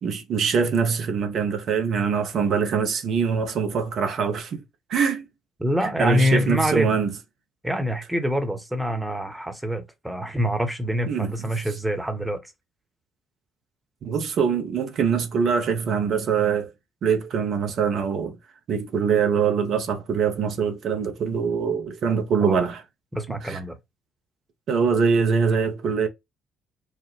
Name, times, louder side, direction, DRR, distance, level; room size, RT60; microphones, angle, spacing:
voice 1, 0.0-4.6 4.9-5.3 5.8-7.1 11.1-11.6 14.0-16.7 17.0-18.4 18.7-22.8 23.4-23.6 24.7-26.1, right 6 dB, 50° right, 0.7 m, -23 dB
voice 2, 5.6-7.0 7.6-12.4 22.4-22.6 23.1-23.8, equal, 10° right, 0.9 m, -25 dB
3.1 x 2.1 x 3.2 m
figure-of-eight pair, 45°, 0 cm